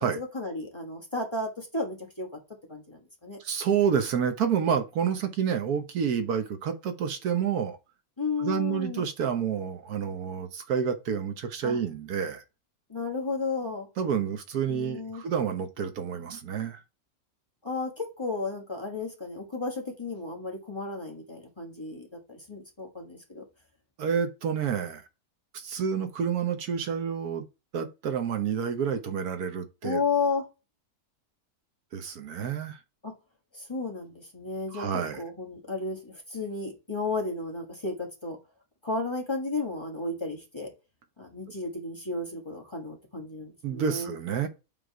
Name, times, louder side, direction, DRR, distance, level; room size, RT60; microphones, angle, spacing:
voice 1, 0.1-2.3 2.7-3.4 8.2-9.0 11.6-11.8 12.9-13.9 14.7-15.2 17.6-23.4 29.8-30.4 33.0-33.1 33.5-34.9 35.2-38.4 38.8-40.7 41.2-44.1, left 3 dB, 20° left, 1.4 m, -33 dB
voice 2, 3.4-7.8 8.4-12.4 14.0-16.8 24.0-25.0 25.5-27.5 27.7-30.0 31.9-32.8 34.7-35.2 43.6-44.5, right 7 dB, 85° right, 1.4 m, -29 dB
7.4 x 3.6 x 4.6 m
omnidirectional pair, 1.6 m